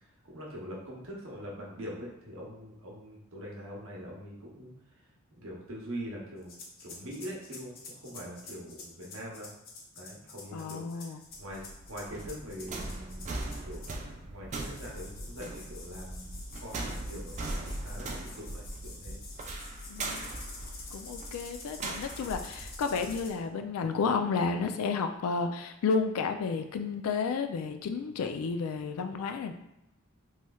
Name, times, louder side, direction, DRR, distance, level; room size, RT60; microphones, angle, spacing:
voice 1, 0.2-4.7 5.4-9.5 10.0-11.1 11.4-19.2, equal, 70° right, -3 dB, 0.8 m, -43 dB
sound 1, 6.4-14.1 14.5-23.3, left 3 dB, 45° left, 0.6 m, -48 dB
voice 2, 10.5-11.2 19.9-20.2 20.9-29.5, left 5 dB, 90° left, 7 dB, 0.3 m, -31 dB
sound 2, 11.3-23.3, right 2 dB, 35° right, 0.3 m, -40 dB
3.1 x 3.1 x 2.3 m, 0.86 s
head